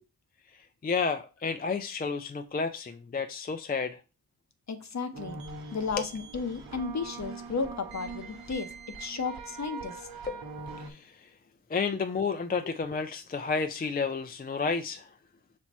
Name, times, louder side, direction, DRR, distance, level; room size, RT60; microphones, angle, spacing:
voice 1, 0.8-4.0 10.3-10.5 10.8-11.3 11.7-15.1, left 5 dB, 25° left, 0.4 m, -31 dB
voice 2, 4.7-5.4 5.7-8.7 9.0-10.1, left 5 dB, 45° left, 0.8 m, -33 dB
sound 1, 5.1-10.9, right 4 dB, 65° right, 1.1 m, -42 dB
5.9 x 2.2 x 4.1 m
cardioid pair, 45°, 39 cm